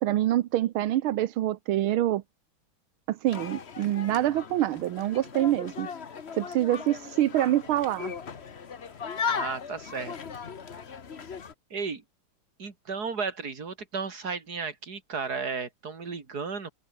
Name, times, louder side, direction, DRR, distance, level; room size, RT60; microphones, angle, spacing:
voice 1, 0.0-2.2 3.1-5.9 6.3-8.1, right 13 dB, 85° right, 1.7 m, -26 dB
sound 1, 3.3-11.5, left 6 dB, 35° left, 1.2 m, -37 dB
voice 2, 9.3-10.1 11.7-12.0 12.6-16.7, right 5 dB, 45° right, 3.4 m, -34 dB
omnidirectional pair, 2.3 m